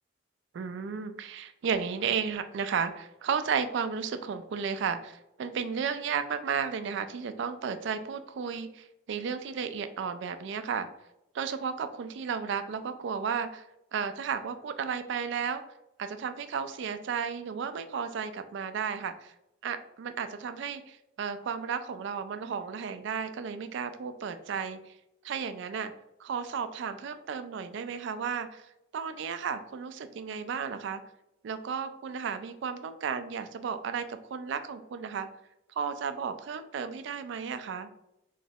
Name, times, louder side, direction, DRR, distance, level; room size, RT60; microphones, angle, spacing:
voice 1, 0.5-10.9 11.3-13.6 13.9-15.6 16.0-19.3 19.6-24.9 25.2-25.9 26.2-28.6 28.9-31.0 31.4-35.3 35.8-37.9, right 6 dB, 60° right, 9 dB, 0.3 m, -33 dB
3.2 x 3.0 x 2.7 m, 0.86 s
head